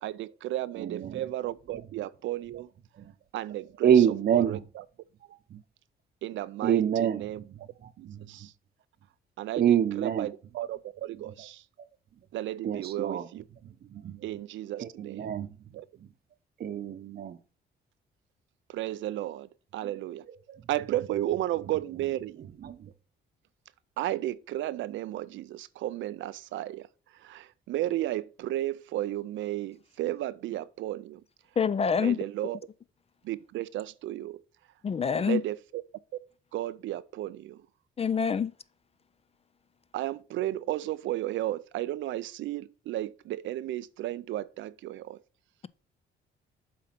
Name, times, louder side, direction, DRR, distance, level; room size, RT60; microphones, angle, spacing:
voice 1, 0.0-2.7 3.3-4.1 4.3-4.8 6.2-7.4 8.0-8.5 9.4-11.6 12.3-13.4 14.2-15.3 15.7-15.9 18.7-20.2 20.7-22.5 24.0-26.9 27.1-31.2 32.0-32.6 33.2-34.4 35.1-35.8 36.5-37.6 39.9-45.2, right 14 dB, 75° right, 0.4 m, -34 dB
voice 2, 0.8-1.1 3.0-3.1 3.8-4.6 5.5-5.6 6.6-7.5 7.8-8.3 9.6-10.3 12.6-13.3 13.9-14.2 14.8-15.5 16.6-17.4 20.5-20.6 22.6-22.9, right 9 dB, 50° right, 0.8 m, -26 dB
voice 3, 31.6-32.2 34.8-35.4 38.0-38.5, left 6 dB, 30° left, 0.4 m, -26 dB
7.6 x 4.0 x 5.7 m
cardioid pair, 90°, 20 cm